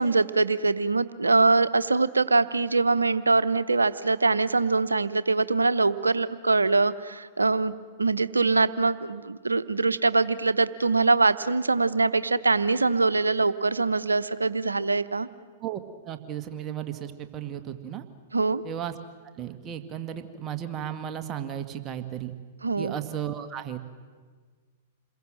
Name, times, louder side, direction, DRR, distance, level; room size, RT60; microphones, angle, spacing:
voice 1, 0.0-7.7 8.0-15.3 18.3-18.6 22.6-23.0, right 3 dB, 90° right, 14 dB, 0.9 m, -23 dB
voice 2, 15.6-18.0 18.6-19.0 19.4-22.3 22.8-23.8, right 10 dB, 30° right, 8 dB, 1.8 m, -34 dB
28.5 x 21.5 x 7.7 m, 1.5 s
figure-of-eight pair, 105°, 0 cm